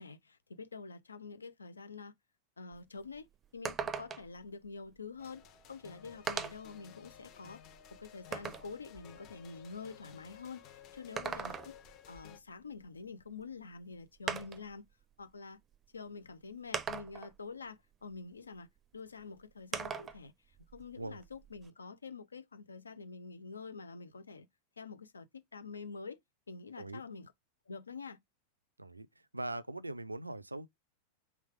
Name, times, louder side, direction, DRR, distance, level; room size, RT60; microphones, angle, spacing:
voice 1, 0.0-2.1 2.6-3.3 3.5-5.4 5.7-7.6 7.9-11.7 12.0-14.8 15.2-15.6 15.9-18.7 18.9-24.5 24.8-26.2 26.5-27.3 27.7-28.2, left 4 dB, 75° left, 0.6 m, -47 dB
sound 1, 2.7-2.8 3.1-3.2 3.6-4.4 5.5-5.6 6.3-6.7 7.3-8.7 10.9-11.9 13.4-13.5 14.3-14.7 15.7-15.8 16.7-17.4 19.7-20.2 20.6-21.7, right 6 dB, 25° right, 0.5 m, -39 dB
sound 2, 5.2-12.4, left 9 dB, 40° left, 0.9 m, -56 dB
voice 2, 29.3-30.7, right 2 dB, 85° right, 0.4 m, -41 dB
3.4 x 3.2 x 4.8 m
figure-of-eight pair, 90°, 0 cm